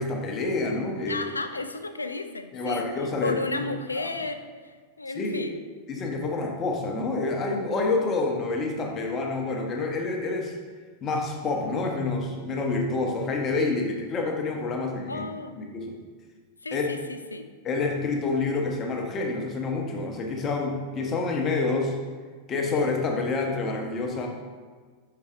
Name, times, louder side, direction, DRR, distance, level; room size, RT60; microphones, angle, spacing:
voice 1, 0.0-1.2 2.5-3.6 4.0-4.1 5.1-5.4 5.9-10.5 11.0-15.2 15.6-15.9 16.7-16.9 17.6-22.0 22.5-24.3, left 3 dB, 25° left, 1 dB, 1.0 m, -28 dB
voice 2, 1.1-2.9 3.2-5.6 15.1-15.6 16.6-17.5, left 3 dB, 80° left, 9 dB, 0.4 m, -33 dB
6.7 x 4.6 x 3.5 m, 1.5 s
figure-of-eight pair, 90°, 0 cm